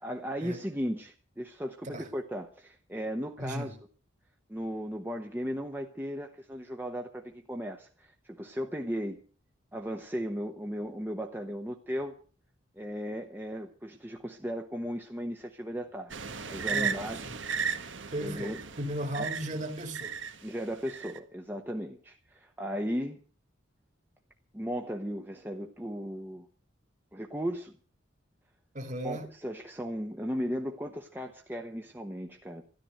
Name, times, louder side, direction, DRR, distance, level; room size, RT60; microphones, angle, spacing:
voice 1, 0.0-3.8 4.5-9.2 9.7-12.2 12.8-16.1 16.5-17.3 18.2-18.6 19.2-19.3 20.4-23.2 24.5-26.5 27.1-27.7 29.0-32.6, equal, 10° right, 1.0 m, -36 dB
voice 2, 3.4-3.8 16.7-17.4 18.1-20.2 28.7-29.3, right 1 dB, 40° right, 2.3 m, -36 dB
sound 1, 16.1-20.3 20.9-21.2, right 6 dB, 70° right, 1.5 m, -35 dB
13.5 x 11.5 x 7.7 m
head